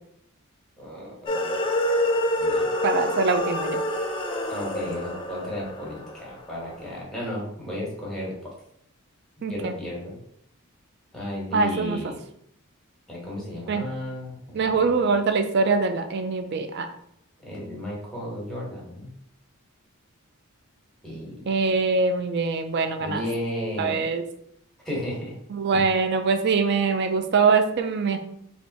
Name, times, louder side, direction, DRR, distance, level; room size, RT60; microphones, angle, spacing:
voice 1, 0.8-1.6 2.4-2.7 4.5-8.3 9.5-10.2 11.1-12.2 13.1-15.1 17.4-19.1 21.0-21.4 23.0-24.0 24.8-25.3 25.7-25.8, left 1 dB, ahead, -5 dB, 1.2 m, -34 dB
sound 1, 1.3-6.7, left 1 dB, 25° left, 0.5 m, -27 dB
voice 2, 2.8-3.8 9.4-9.7 11.5-12.0 13.7-13.8 14.5-16.9 21.5-23.2 23.8-24.2 25.5-28.2, right 4 dB, 50° right, 7 dB, 0.4 m, -23 dB
3.5 x 2.5 x 3.9 m, 0.71 s
head